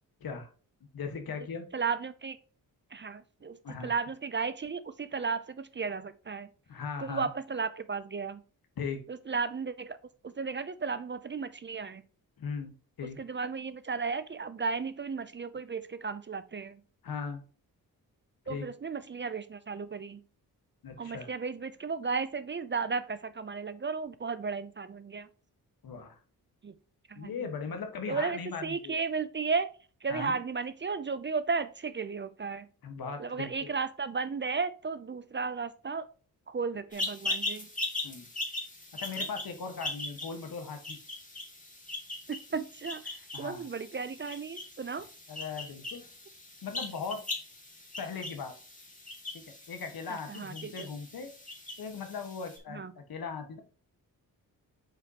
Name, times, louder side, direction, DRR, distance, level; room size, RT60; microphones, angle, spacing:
voice 1, 0.9-1.7 3.6-3.9 6.7-7.3 8.8-9.0 12.4-13.2 17.0-17.4 18.4-18.7 20.8-21.3 25.8-26.2 27.1-28.9 30.1-30.4 32.8-33.7 38.0-38.3 38.9-41.0 43.3-43.7 45.3-46.0 46.6-47.2 48.0-48.5 49.7-51.3 51.8-53.6, left 5 dB, 70° left, 5 dB, 1.6 m, -38 dB
voice 2, 1.7-2.4 2.9-3.6 3.8-6.5 7.0-8.4 9.3-10.0 10.2-12.0 13.2-16.8 18.5-20.2 21.0-25.3 26.6-26.7 27.1-27.3 28.1-29.7 30.0-32.7 33.2-36.1 36.5-37.7 42.3-45.1 50.1-50.9 52.7-52.9, right 5 dB, 30° right, 14 dB, 0.5 m, -34 dB
sound 1, 36.9-52.6, left 2 dB, 20° left, 2.3 m, -40 dB
7.5 x 5.1 x 2.9 m, 0.38 s
cardioid pair, 80°, 37 cm